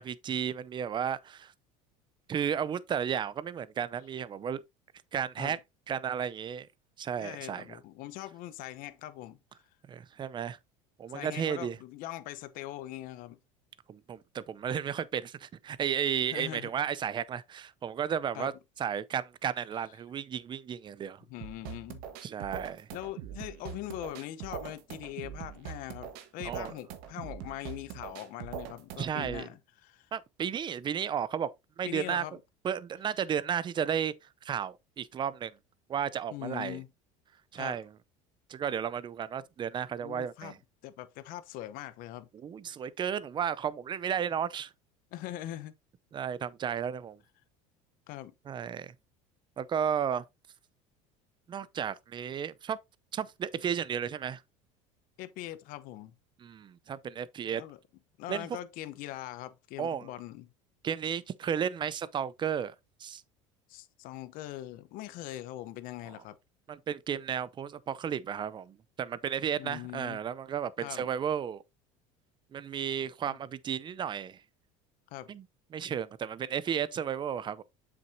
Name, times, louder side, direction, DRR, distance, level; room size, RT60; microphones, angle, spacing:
voice 1, 0.0-1.5 2.3-4.6 5.1-5.6 5.9-6.7 7.0-7.8 9.9-10.6 11.0-11.8 13.9-18.5 18.8-21.2 22.2-22.9 26.4-26.7 29.0-29.5 30.1-31.5 31.8-32.2 32.6-34.1 34.4-35.5 35.9-36.8 37.5-37.9 38.5-40.6 42.3-44.7 46.1-47.2 48.5-48.9 49.6-50.2 51.5-52.8 53.1-54.4 56.4-57.6 58.3-58.6 59.8-60.1 60.8-62.7 63.0-63.2 66.7-71.6 72.5-74.4 75.3-75.4 75.7-77.6, right 8 dB, 30° right, 0.6 m, -33 dB
voice 2, 7.2-9.4 11.1-13.4 16.3-16.7 18.3-18.5 21.3-22.0 22.9-30.1 31.8-32.4 36.3-36.9 37.6-37.8 40.0-40.5 40.8-42.3 45.1-45.7 48.1-48.3 55.2-56.1 57.5-57.8 58.2-60.5 63.7-66.4 69.6-70.2 70.8-71.1 73.2-73.3 75.1-75.3, left 14 dB, 65° left, 0.9 m, -41 dB
sound 1, 21.4-29.4, right 9 dB, 70° right, 1.4 m, -42 dB
7.6 x 6.1 x 2.7 m
supercardioid pair, 110°, 16 cm